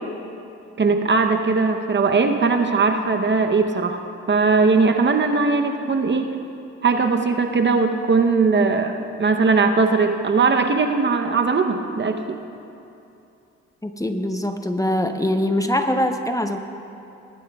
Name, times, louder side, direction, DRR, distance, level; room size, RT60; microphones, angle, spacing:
voice 1, 0.8-4.0 4.3-6.3 6.8-12.2, right 4 dB, 40° right, 5 dB, 0.9 m, -19 dB
voice 2, 13.8-16.6, left 1 dB, 10° left, 6 dB, 0.9 m, -23 dB
19.5 x 11.5 x 2.4 m, 2.7 s
supercardioid pair, 55°, 30 cm